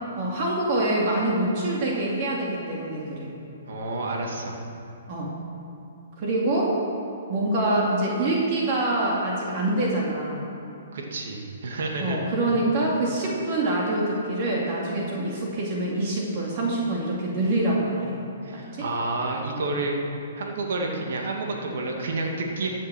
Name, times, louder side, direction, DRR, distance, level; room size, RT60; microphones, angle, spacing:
voice 1, 0.2-3.3 5.1-5.3 6.2-6.8 7.3-10.5 12.0-18.1 18.5-18.8, right 1 dB, 40° right, -3 dB, 2.4 m, -25 dB
voice 2, 3.7-4.6 10.9-12.3 18.4-20.0 20.4-22.7, right 2 dB, 70° right, 1 dB, 2.1 m, -29 dB
14.0 x 7.5 x 6.3 m, 2.6 s
hypercardioid pair, 150°, 0 cm